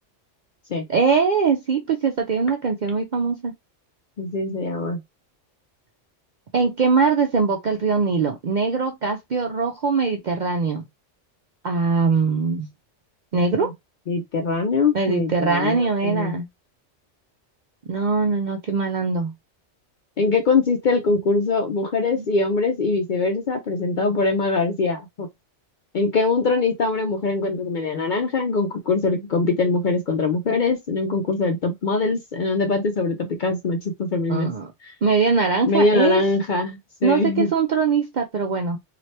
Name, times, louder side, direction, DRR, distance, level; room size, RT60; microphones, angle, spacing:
voice 1, 0.9-3.5 6.5-10.8 11.6-12.7 13.3-13.7 14.9-16.5 17.9-19.3 22.2-22.3 34.3-34.7 35.0-36.2 37.0-38.8, right 5 dB, 60° right, 0.5 m, -22 dB
voice 2, 4.2-5.0 13.6-13.7 14.1-16.4 20.2-25.3 25.9-34.5 34.8-34.9 35.6-37.5, left 3 dB, 55° left, 0.6 m, -22 dB
2.7 x 2.4 x 3.2 m
omnidirectional pair, 1.3 m